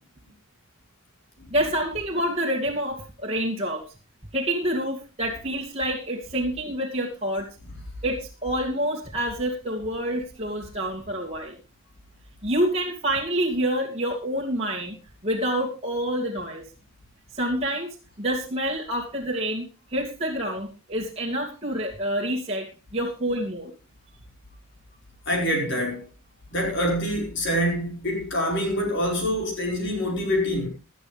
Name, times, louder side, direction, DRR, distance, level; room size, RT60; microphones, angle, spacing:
voice 1, 1.5-3.8 4.3-7.5 8.0-11.6 12.4-15.0 15.2-16.6 17.3-23.7, right 1 dB, 30° right, 2.6 m, -27 dB
voice 2, 25.2-26.1 26.5-30.7, equal, 60° left, 5.1 m, -25 dB
18.0 x 11.5 x 3.5 m
head